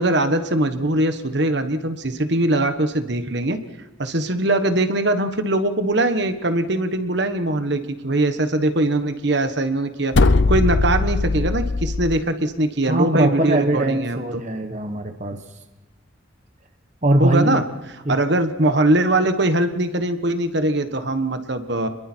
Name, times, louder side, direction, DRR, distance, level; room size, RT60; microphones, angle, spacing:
voice 1, 0.0-3.6 4.0-10.1 10.5-14.4 17.2-17.6 18.1-21.9, right 1 dB, 55° right, 8 dB, 1.4 m, -21 dB
sound 1, 10.1-12.2, left 3 dB, 65° left, 0.7 m, -19 dB
voice 2, 12.9-15.4 17.0-17.6 18.1-18.2, right 1 dB, 35° right, 6 dB, 1.1 m, -21 dB
29.0 x 22.0 x 4.6 m, 1.1 s
head